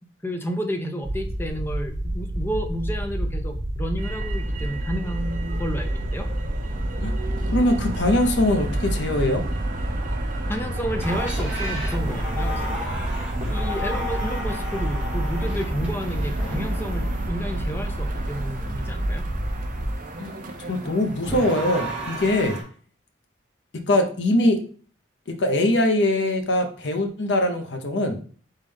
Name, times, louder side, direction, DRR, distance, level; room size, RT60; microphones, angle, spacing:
voice 1, 0.2-6.3 10.5-12.9 13.5-19.2, equal, 10° left, 5 dB, 0.5 m, -31 dB
sound 1, 1.0-19.9, right 1 dB, 75° right, 1.0 m, -28 dB
Motor vehicle (road), 4.0-22.5, right 2 dB, 45° right, 0.6 m, -36 dB
voice 2, 7.5-9.4 20.2-20.3 20.7-22.6 23.9-24.6 25.4-28.2, left 1 dB, 65° left, 6 dB, 0.7 m, -22 dB
sound 2, 11.0-17.3 21.2-22.6, equal, 5° right, 1.1 m, -33 dB
4.0 x 3.7 x 3.3 m, 0.43 s
head